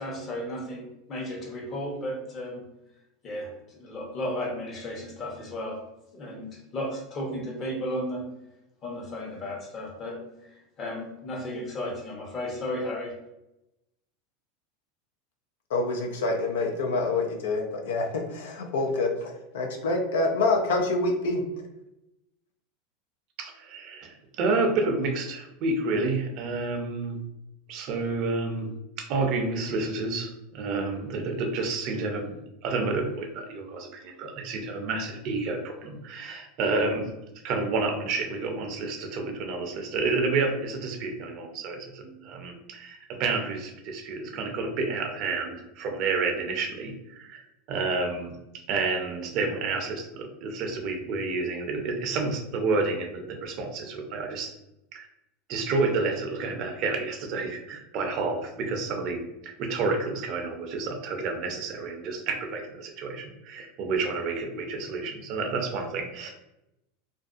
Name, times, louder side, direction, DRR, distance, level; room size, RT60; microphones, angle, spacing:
voice 1, 0.0-2.7 3.2-5.8 6.1-8.3 8.8-13.2, left 1 dB, 40° left, -1 dB, 0.9 m, -34 dB
voice 2, 15.7-21.4, left 2 dB, 80° left, 2 dB, 0.5 m, -26 dB
voice 3, 23.4-27.2 27.7-37.1 37.4-48.4 48.7-54.5 54.9-55.1 55.5-66.3, right 3 dB, 55° right, 3 dB, 0.6 m, -30 dB
2.5 x 2.3 x 2.4 m, 0.89 s
hypercardioid pair, 105°, 0 cm